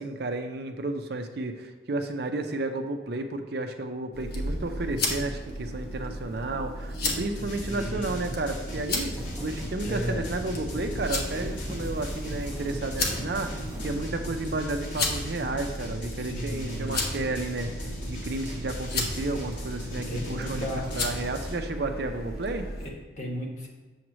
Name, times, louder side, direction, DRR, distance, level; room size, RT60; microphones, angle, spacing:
voice 1, 0.0-22.7, right 2 dB, 60° right, 6 dB, 0.5 m, -32 dB
sound 1, 4.1-22.9, left 1 dB, 55° left, 1.0 m, -34 dB
sound 2, 7.4-21.6, left 1 dB, 85° left, 2.2 m, -40 dB
voice 2, 7.6-8.1 9.8-10.2 16.2-17.0 20.1-20.9 22.8-23.7, equal, 40° left, -1 dB, 1.2 m, -35 dB
sound 3, 9.2-14.2, equal, 15° right, 0.8 m, -40 dB
7.0 x 3.1 x 6.0 m, 1.3 s
head